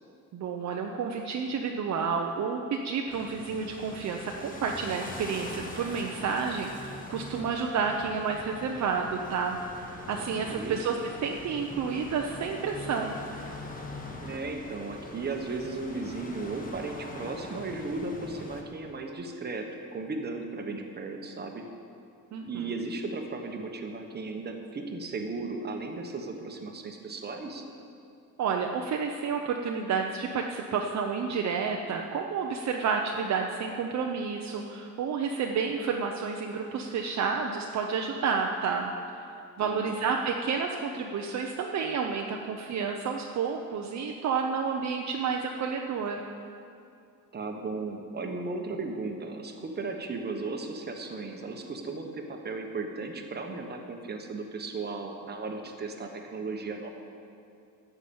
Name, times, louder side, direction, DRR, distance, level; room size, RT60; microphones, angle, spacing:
voice 1, 0.3-9.6 9.9-13.2 22.3-22.7 28.4-38.9 39.6-46.2, right 5 dB, 50° right, 2 dB, 0.8 m, -30 dB
sound 1, 3.1-18.6, left 2 dB, 25° left, 1.2 m, -43 dB
voice 2, 10.2-10.8 14.1-21.6 22.4-27.7 39.6-40.0 47.3-56.9, right 3 dB, 30° right, 3 dB, 1.2 m, -36 dB
13.5 x 6.0 x 8.7 m, 2.6 s
cardioid pair, 150°, 36 cm